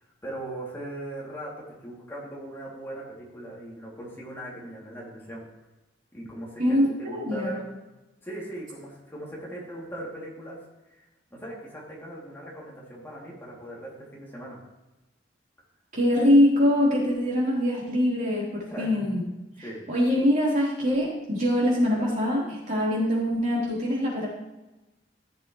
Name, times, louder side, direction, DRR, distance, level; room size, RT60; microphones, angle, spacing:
voice 1, 0.2-5.4 6.1-7.6 8.2-10.6 10.9-11.0 11.3-14.6 18.7-19.0 19.6-19.8, right 1 dB, 15° left, -5 dB, 2.9 m, -39 dB
voice 2, 6.6-7.6 15.9-19.2 19.6-24.3, left 1 dB, 45° right, -5 dB, 3.9 m, -23 dB
15.0 x 6.8 x 3.2 m, 1.0 s
head